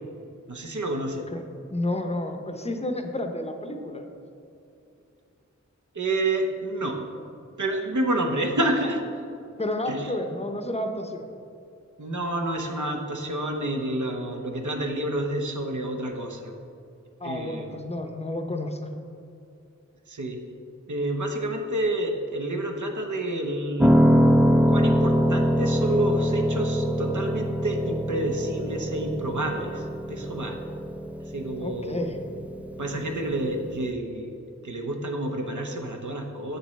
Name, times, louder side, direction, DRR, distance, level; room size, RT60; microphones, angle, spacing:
voice 1, 0.5-1.2 5.9-7.0 7.6-9.0 9.9-10.0 12.0-16.5 17.2-17.8 20.1-20.4 20.9-23.9 24.7-30.6 31.3-32.0 32.8-34.3 34.6-36.6, right 1 dB, 80° right, 3 dB, 0.8 m, -29 dB
voice 2, 1.7-4.1 9.6-11.3 17.2-18.8 31.6-32.2, left 1 dB, 20° left, 5 dB, 0.6 m, -30 dB
Piano, 23.8-33.9, equal, 5° right, 0.3 m, -24 dB
7.5 x 6.7 x 3.2 m, 2.6 s
wide cardioid pair, 50°, 29 cm